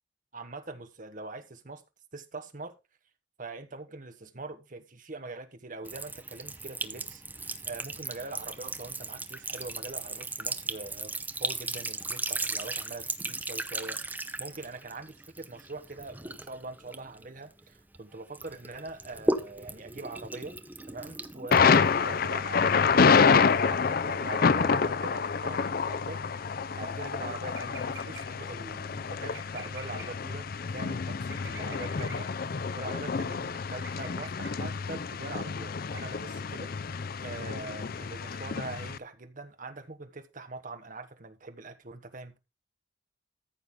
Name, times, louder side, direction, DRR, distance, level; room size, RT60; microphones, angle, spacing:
voice 1, 0.3-1.8 2.1-2.8 3.4-20.6 20.9-26.5 26.8-30.5 30.7-42.4, right 3 dB, 45° right, 1.3 m, -43 dB
Sink (filling or washing) / Trickle dribble, 5.8-18.0 18.3-22.2, right 2 dB, 10° right, 0.8 m, -36 dB
Thunder, 21.5-39.0, left 5 dB, 55° left, 0.5 m, -27 dB
sound 1, 27.5-28.5 29.3-30.4 31.3-32.5 33.8-34.8 35.9-36.2, right 4 dB, 85° right, 4.2 m, -48 dB
14.0 x 6.2 x 3.7 m
head